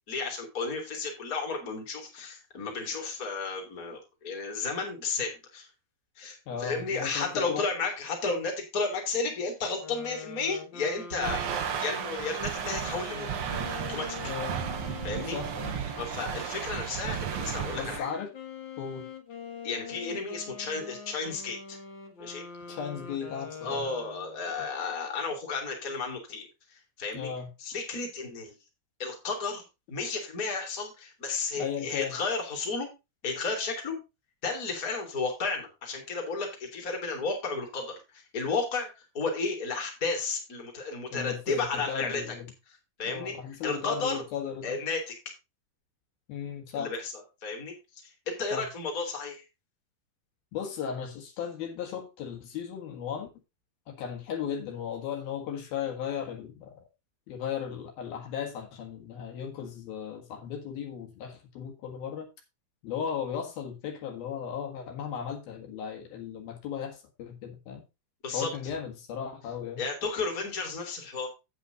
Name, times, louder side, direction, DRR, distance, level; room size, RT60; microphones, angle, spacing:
voice 1, 0.1-5.7 6.2-13.3 13.9-14.3 15.0-15.4 16.0-18.1 19.6-21.8 22.2-22.4 23.6-27.3 27.6-28.5 29.0-32.9 33.2-34.0 34.4-42.2 43.0-43.3 43.6-44.2 44.6-45.1 46.7-47.1 47.4-47.7 48.0-49.4 68.2-68.5 69.8-71.3, left 4 dB, 25° left, 2 dB, 2.8 m, -33 dB
voice 2, 6.5-7.7 14.2-14.6 15.3-15.8 17.7-18.3 18.8-19.1 22.7-23.9 27.1-27.5 31.6-32.2 41.1-42.5 43.1-44.8 46.3-46.9 48.5-48.7 50.5-53.3 53.9-56.9 57.3-62.3 62.8-67.8 68.3-69.8, left 8 dB, 70° left, 2 dB, 3.6 m, -36 dB
sound 1, 9.7-16.8 17.4-24.5, left 6 dB, 55° left, 1.3 m, -44 dB
sound 2, 11.2-18.0, right 8 dB, 90° right, 1.2 m, -34 dB
9.2 x 8.5 x 3.9 m, 0.26 s
omnidirectional pair, 4.5 m